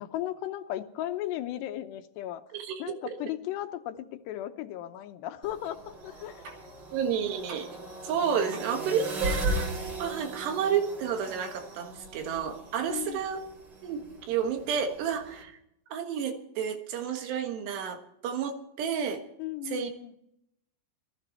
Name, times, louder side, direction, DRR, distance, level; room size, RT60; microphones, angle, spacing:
voice 1, 0.0-2.4 2.8-6.5 12.9-13.2 19.4-20.1, left 13 dB, 85° left, 9 dB, 3.1 m, -36 dB
voice 2, 2.5-3.2 6.9-7.7 8.0-9.7 10.0-13.4 13.8-15.5 15.9-19.2 19.7-19.9, right 7 dB, 85° right, 5 dB, 3.7 m, -31 dB
sound 1, 5.4-15.4, right 1 dB, 35° right, 2.4 m, -38 dB
sound 2, 5.6-5.9 6.4-6.8 7.5-8.0 8.5-8.8 9.6-9.9 10.6-10.7, right 3 dB, 55° right, 4.5 m, -48 dB
19.5 x 14.5 x 4.5 m, 0.77 s
omnidirectional pair, 4.8 m